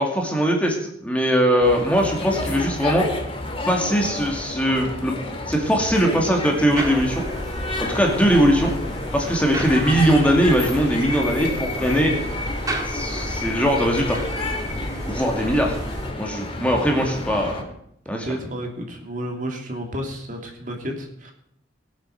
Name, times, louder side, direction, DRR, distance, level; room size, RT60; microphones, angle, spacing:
voice 1, 0.0-3.1 3.7-5.2 5.5-7.3 7.8-8.7 9.1-12.1 12.9-14.2 15.1-15.8 16.2-17.6 18.1-18.3, equal, 5° left, 0 dB, 2.3 m, -20 dB
sound 1, 1.6-17.6, left 2 dB, 30° left, 2.3 m, -30 dB
sound 2, 6.8-16.1, right 1 dB, 20° right, 2.2 m, -32 dB
voice 2, 18.2-21.3, equal, 45° right, 2 dB, 2.9 m, -31 dB
20.0 x 8.8 x 6.5 m, 0.72 s
head